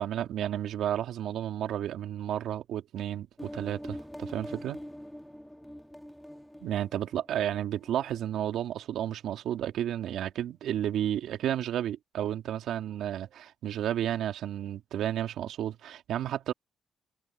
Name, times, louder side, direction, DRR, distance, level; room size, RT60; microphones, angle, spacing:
voice 1, 0.0-4.8 6.6-16.5, right 11 dB, 75° right, 2.4 m, -32 dB
sound 1, 3.4-8.8, equal, 5° left, 2.1 m, -45 dB
cardioid pair, 90°, 0 cm